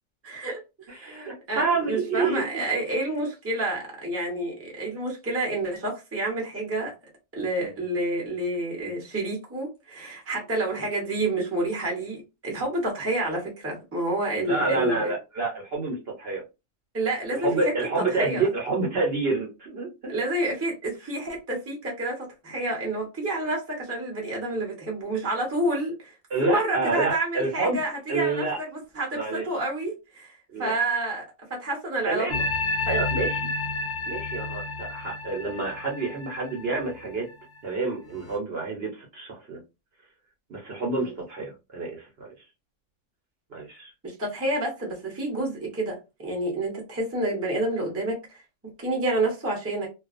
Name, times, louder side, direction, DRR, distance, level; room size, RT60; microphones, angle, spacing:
voice 1, 0.2-1.2 1.5-6.9 7.3-15.1 16.9-18.5 20.1-26.1 26.4-31.2 31.5-32.5 32.9-33.0 41.0-41.2 44.0-48.4 48.8-49.9, right 1 dB, 15° right, 0.7 m, -29 dB
voice 2, 0.9-2.6 14.5-16.4 17.3-20.1 26.3-27.8 28.1-28.6 29.1-29.4 30.5-30.7 32.1-32.4 32.9-33.5 34.1-37.3 37.6-39.6 40.5-42.3 43.5-43.9, right 3 dB, 50° right, 0.9 m, -28 dB
sound 1, 32.3-37.6 38.1-38.4, left 3 dB, 50° left, 0.7 m, -30 dB
2.4 x 2.3 x 2.4 m
omnidirectional pair, 1.5 m